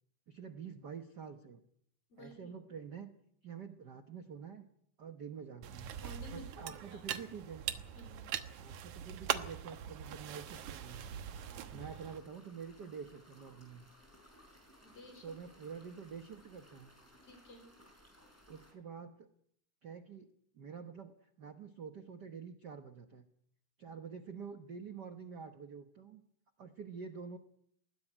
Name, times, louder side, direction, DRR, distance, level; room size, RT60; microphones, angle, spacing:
voice 1, 0.3-1.6 2.2-3.1 3.4-4.7 5.0-5.9 6.3-7.7 8.6-11.1 11.7-13.9 15.2-16.9 18.5-19.3 19.8-20.3 20.5-21.1 21.4-23.3 23.8-26.2 26.6-27.4, right 6 dB, 55° right, 8 dB, 1.2 m, -47 dB
voice 2, 2.1-2.5 6.0-7.0 7.9-8.2 11.5-11.8 14.8-15.3 17.2-17.7, left 1 dB, 50° left, 6 dB, 5.7 m, -54 dB
sound 1, 5.6-12.2, right 10 dB, 75° right, 2.5 m, -42 dB
sound 2, 10.2-18.7, equal, 5° left, 5.2 m, -62 dB
20.0 x 16.5 x 9.9 m, 0.69 s
omnidirectional pair, 3.5 m